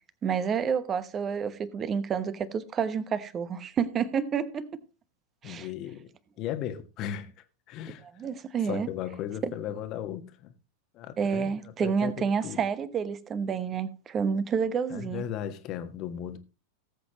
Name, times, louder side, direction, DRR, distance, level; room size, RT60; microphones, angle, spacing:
voice 1, 0.2-4.8 5.4-5.7 8.2-8.9 9.4-9.5 11.2-15.2, right 6 dB, 25° right, 1.1 m, -29 dB
voice 2, 5.4-6.1 6.4-7.3 7.7-8.1 8.6-10.5 10.9-12.6 14.9-16.4, left 10 dB, 35° left, 1.4 m, -36 dB
18.5 x 8.0 x 3.0 m
figure-of-eight pair, 90°, 0 cm